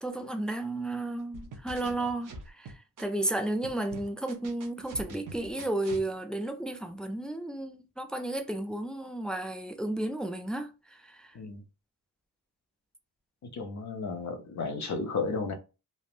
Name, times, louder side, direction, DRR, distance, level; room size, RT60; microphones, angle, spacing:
voice 1, 0.0-2.7 3.0-10.7 11.0-11.3, right 1 dB, ahead, 0.3 m, -33 dB
sound 1, 1.3-3.3 3.6-6.1, right 3 dB, 55° right, 0.8 m, -44 dB
voice 2, 13.5-15.5, left 4 dB, 45° left, 0.7 m, -33 dB
3.3 x 2.0 x 2.5 m
cardioid pair, 90°, 40 cm